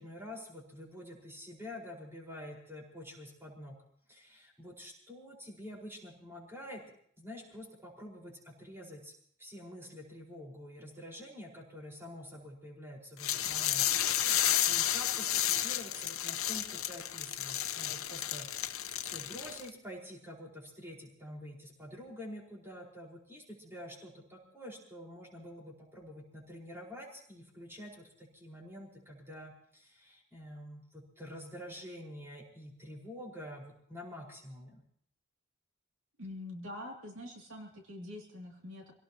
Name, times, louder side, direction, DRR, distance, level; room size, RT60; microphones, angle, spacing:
voice 1, 0.0-3.8 4.1-6.8 7.2-9.1 9.4-34.8, left 1 dB, 10° right, -2 dB, 4.9 m, -47 dB
sound 1, 13.2-19.7, left 11 dB, 70° left, 1.0 m, -32 dB
voice 2, 36.2-38.9, left 1 dB, 65° right, 1 dB, 2.7 m, -45 dB
27.0 x 18.0 x 3.0 m, 0.63 s
head